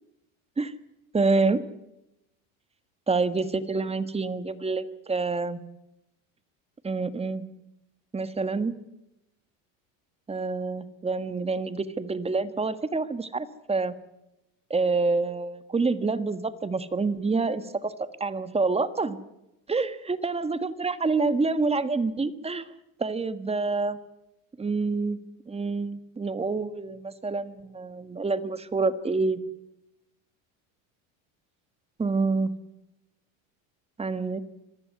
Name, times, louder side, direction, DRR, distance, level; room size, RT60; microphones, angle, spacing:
voice 1, 1.1-1.6 3.1-5.6 6.8-7.4 8.1-8.8 10.3-13.9 14.7-19.2 19.7-22.7 23.0-24.0 24.6-25.2 25.5-29.4 32.0-32.5 34.0-34.4, right 3 dB, 15° right, 13 dB, 1.5 m, -27 dB
25.5 x 15.0 x 9.5 m, 0.88 s
supercardioid pair, 125°, 42 cm